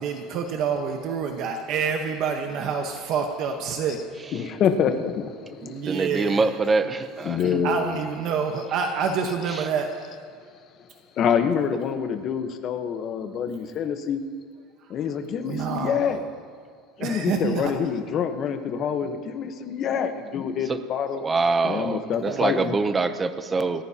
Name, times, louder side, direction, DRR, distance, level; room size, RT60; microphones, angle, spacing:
voice 1, 0.0-4.0 5.6-6.5 7.4-9.9 15.4-16.1 17.0-17.7 22.3-22.7, right 6 dB, 45° right, 4 dB, 1.1 m, -27 dB
voice 2, 4.3-5.3 5.6-6.2 7.2-8.0 11.2-14.2 14.9-16.2 17.0-21.2 21.6-22.7, left 7 dB, 35° left, 7 dB, 1.0 m, -26 dB
voice 3, 5.9-7.6 9.6-9.7 20.7-20.8 21.2-23.8, right 3 dB, 15° right, 11 dB, 0.6 m, -24 dB
28.5 x 14.5 x 2.8 m, 2.1 s
cardioid pair, 165°, 0 cm